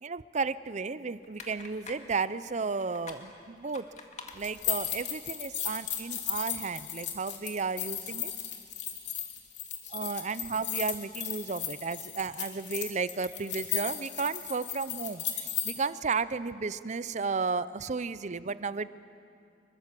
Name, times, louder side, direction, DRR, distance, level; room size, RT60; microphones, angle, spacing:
voice 1, 0.0-3.9 4.3-8.3 9.9-18.9, right 4 dB, 40° right, 16 dB, 0.6 m, -33 dB
sound 1, 1.2-6.6, left 4 dB, 45° left, 2.2 m, -50 dB
sound 2, 4.4-15.7, left 10 dB, 80° left, 3.1 m, -35 dB
26.0 x 22.5 x 7.6 m, 2.5 s
head